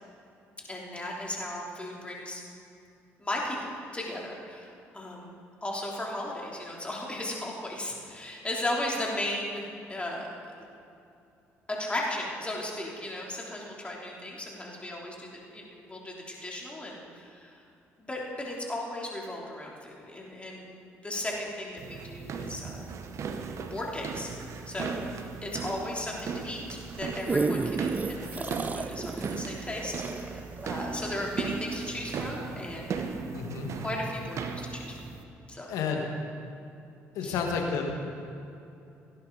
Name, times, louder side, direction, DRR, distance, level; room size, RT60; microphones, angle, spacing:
voice 1, 0.7-2.4 3.2-5.3 5.6-10.3 11.7-17.6 18.0-20.7 21.0-22.8 23.7-24.3 24.7-25.0 25.4-33.0 33.8-35.0 35.5-35.7 37.2-37.4, left 1 dB, 20° left, -3 dB, 3.2 m, -36 dB
sound 1, 21.8-35.2, right 5 dB, 60° right, 1.0 m, -37 dB
sound 2, 26.9-31.6 32.1-32.2, right 3 dB, 25° right, 0.5 m, -32 dB
voice 2, 33.3-33.7 35.7-36.1 37.1-37.8, left 5 dB, 75° left, 2 dB, 1.7 m, -30 dB
17.0 x 10.5 x 4.0 m, 2.7 s
hypercardioid pair, 60°, 6 cm